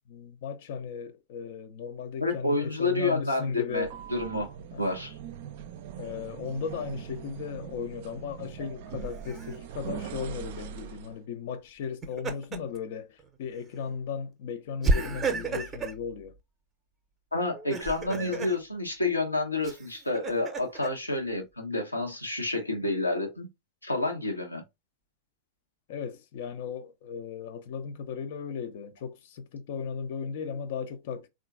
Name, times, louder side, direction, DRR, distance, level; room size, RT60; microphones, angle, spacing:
voice 1, 0.1-4.0 4.7-4.8 6.0-16.3 18.1-18.5 25.9-31.3, left 6 dB, 55° left, 0.5 m, -36 dB
voice 2, 2.2-5.2 17.3-23.5 23.8-24.6, left 2 dB, 85° left, 0.8 m, -29 dB
sound 1, 3.7-11.2, right 9 dB, 50° right, 0.3 m, -42 dB
Laughter, 9.0-9.6 11.8-12.8 13.2-13.4 14.8-16.0 17.5-18.6 19.6-20.9, right 3 dB, 20° right, 0.7 m, -31 dB
3.6 x 2.4 x 2.3 m
figure-of-eight pair, 90°, 0 cm